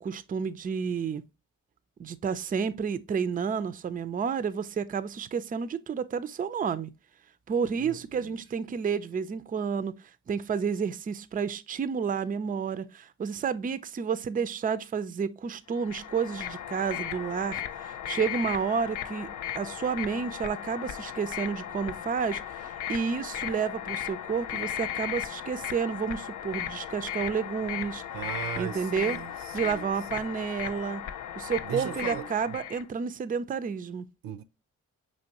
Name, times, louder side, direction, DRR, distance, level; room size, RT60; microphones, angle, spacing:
voice 1, 0.0-1.2 2.0-6.9 7.5-9.9 10.3-19.3 19.5-28.0 28.6-29.2 29.5-31.0 31.4-34.1, right 6 dB, 25° right, 0.4 m, -30 dB
voice 2, 7.7-8.4 28.1-30.3 31.6-32.6 34.2-34.4, right 10 dB, 80° right, 0.5 m, -39 dB
sound 1, 15.7-32.8, left 11 dB, 65° left, 0.5 m, -36 dB
5.2 x 3.1 x 2.8 m
supercardioid pair, 50°, 34 cm